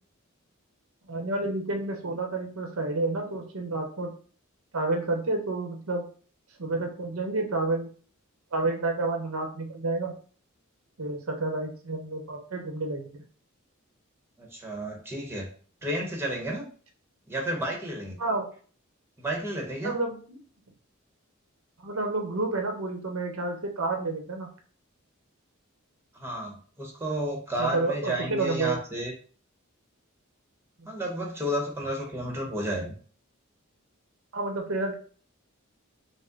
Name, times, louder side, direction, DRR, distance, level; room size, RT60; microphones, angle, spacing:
voice 1, 1.1-4.2 4.7-6.1 6.6-7.9 8.5-10.1 11.0-13.2 18.2-18.5 19.8-20.4 21.8-24.5 27.6-28.8 30.8-30.9 34.3-35.0, right 2 dB, 85° right, 3 dB, 0.9 m, -30 dB
voice 2, 14.4-15.5 15.8-16.7 17.3-18.2 19.2-20.0 26.1-29.1 30.9-32.9, right 1 dB, 10° right, 1 dB, 1.0 m, -31 dB
5.3 x 2.1 x 3.8 m, 0.43 s
head